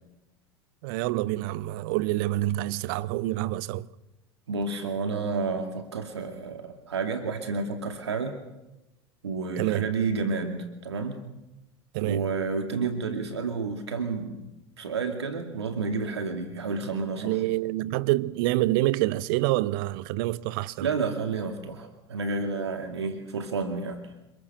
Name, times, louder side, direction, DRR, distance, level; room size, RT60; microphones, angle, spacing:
voice 1, 0.8-3.9 9.6-9.9 11.9-12.2 17.2-20.9, right 17 dB, 50° right, 0.9 m, -27 dB
voice 2, 4.5-8.4 9.2-11.2 12.0-14.4 14.8-17.4 20.8-24.0, right 4 dB, 70° right, 2.3 m, -30 dB
28.0 x 21.5 x 6.8 m
figure-of-eight pair, 75°, 14 cm